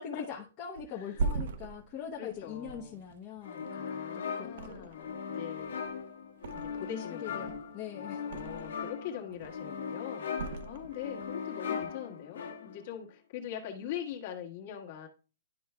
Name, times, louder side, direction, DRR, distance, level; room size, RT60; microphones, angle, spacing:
voice 1, 0.0-3.7 4.1-4.9 7.1-8.2, left 7 dB, 25° left, -3 dB, 0.8 m, -42 dB
Thump thud, 0.8-4.0 4.5-5.3 5.5-7.0 7.3-8.9 9.2-9.8 10.3-11.3 11.7-11.9, right 4 dB, 55° right, 0.7 m, -39 dB
voice 2, 2.2-2.9 3.7-5.8 6.5-7.6 7.9-15.1, left 9 dB, 45° left, 2 dB, 1.4 m, -42 dB
sound 1, 3.4-12.9, left 6 dB, 80° left, 1.3 m, -39 dB
11.0 x 4.6 x 2.2 m, 0.34 s
hypercardioid pair, 160°, 0 cm